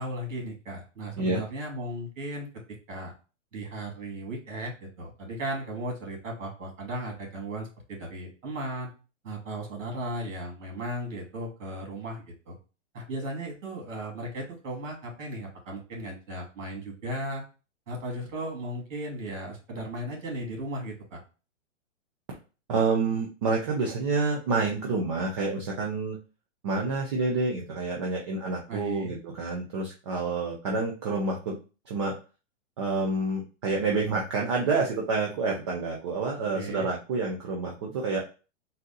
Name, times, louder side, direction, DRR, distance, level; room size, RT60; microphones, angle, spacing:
voice 1, 0.0-2.5 2.9-3.1 3.5-8.9 9.2-12.6 12.9-17.4 17.9-21.2 28.7-29.1 36.5-36.9, right 1 dB, 75° right, 1 dB, 2.3 m, -36 dB
voice 2, 22.7-26.2 26.6-32.2 32.8-38.2, right 3 dB, 25° right, -1 dB, 0.4 m, -28 dB
4.0 x 2.6 x 3.8 m, 0.33 s
hypercardioid pair, 150°, 38 cm